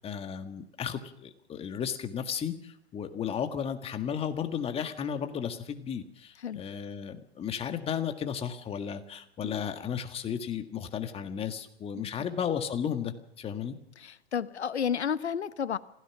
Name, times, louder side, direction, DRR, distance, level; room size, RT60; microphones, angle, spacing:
voice 1, 0.0-13.8, left 8 dB, 15° left, 1.8 m, -34 dB
voice 2, 14.0-15.8, left 8 dB, 80° left, 1.3 m, -31 dB
26.5 x 16.5 x 6.1 m
hypercardioid pair, 125°, 33 cm